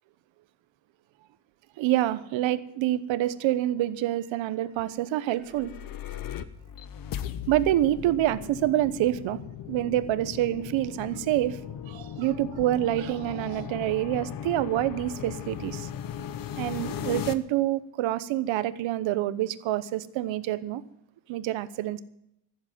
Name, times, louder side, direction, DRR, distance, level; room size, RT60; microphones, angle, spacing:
voice 1, 1.8-5.7 7.5-9.4 9.7-11.6 11.9-15.9 16.6-20.8 21.3-22.0, right 14 dB, 75° right, 14 dB, 1.0 m, -27 dB
sound 1, 5.3-17.3, left 9 dB, 45° left, 0.8 m, -37 dB
14.5 x 7.6 x 9.3 m, 0.77 s
cardioid pair, 175°, 46 cm